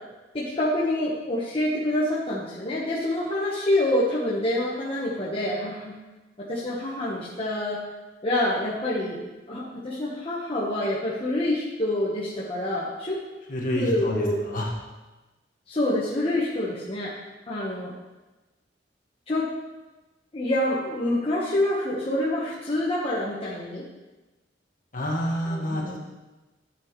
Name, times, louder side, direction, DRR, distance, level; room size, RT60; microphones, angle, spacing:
voice 1, 0.3-5.9 6.4-7.8 8.2-9.2 9.5-13.2 13.7-14.4 15.7-17.1 17.5-17.9 19.3-19.5 20.3-23.8 25.5-25.9, left 1 dB, 30° left, -6 dB, 1.2 m, -26 dB
voice 2, 13.5-14.7 24.9-26.1, equal, 50° left, -2 dB, 1.8 m, -28 dB
12.0 x 7.3 x 3.2 m, 1.1 s
head